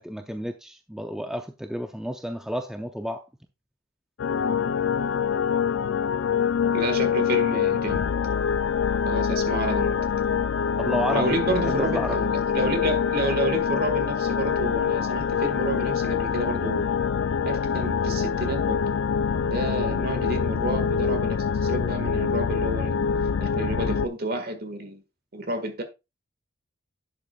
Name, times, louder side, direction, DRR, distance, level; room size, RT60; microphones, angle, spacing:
voice 1, 0.0-3.2 10.8-12.3, equal, 5° right, 0.5 m, -31 dB
sound 1, 4.2-24.1, left 7 dB, 60° left, 0.4 m, -25 dB
voice 2, 6.7-8.0 9.0-10.0 11.1-16.9 17.4-18.8 19.4-23.0 23.4-25.0 25.3-25.8, right 1 dB, 45° right, 1.7 m, -30 dB
11.0 x 7.7 x 2.3 m
head